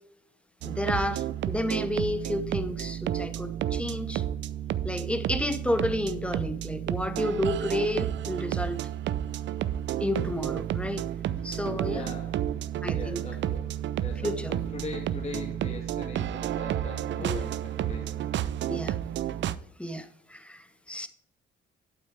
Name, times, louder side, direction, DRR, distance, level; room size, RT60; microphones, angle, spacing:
voice 1, 0.6-4.2 4.8-8.9 10.0-11.0 11.4-12.1 12.8-13.2 14.2-14.6 17.2-17.4 18.7-19.0 19.8-21.1, left 1 dB, 5° left, 0.9 m, -31 dB
sound 1, 0.6-19.6, right 11 dB, 65° right, 0.5 m, -31 dB
voice 2, 11.8-12.4 12.9-13.7 14.0-18.4, left 3 dB, 35° left, 2.1 m, -41 dB
8.7 x 7.7 x 3.3 m
cardioid pair, 90°, 20 cm